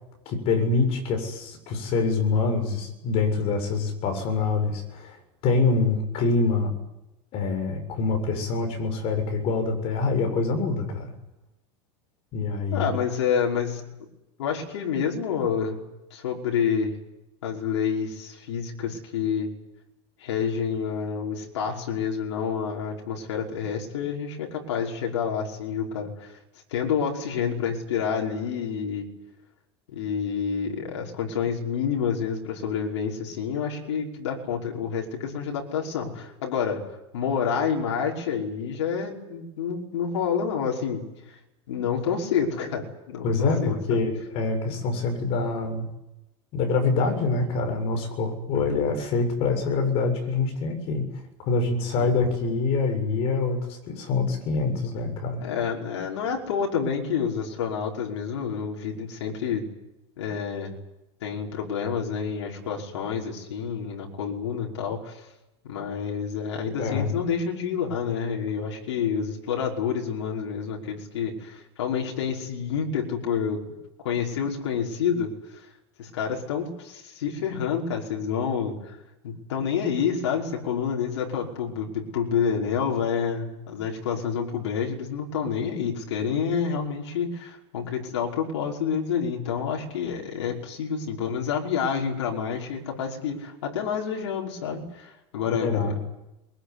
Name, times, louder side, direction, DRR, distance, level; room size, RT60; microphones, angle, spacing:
voice 1, 0.3-5.2 5.4-6.7 7.3-11.1 12.3-12.9 43.2-45.9 46.5-51.1 51.4-55.4 66.8-67.1 95.5-96.0, left 4 dB, 45° left, 5 dB, 7.4 m, -25 dB
voice 2, 12.7-13.8 14.4-15.8 16.1-17.0 17.4-19.5 20.2-26.4 26.7-29.1 29.9-36.8 37.1-41.1 41.7-44.0 44.7-44.8 48.7-48.9 52.0-52.2 55.4-59.7 60.2-60.7 61.2-65.3 65.6-73.6 74.0-75.7 76.0-79.0 79.2-95.9, left 7 dB, 85° left, 0 dB, 5.5 m, -28 dB
23.0 x 23.0 x 9.9 m, 0.93 s
supercardioid pair, 140°, 15 cm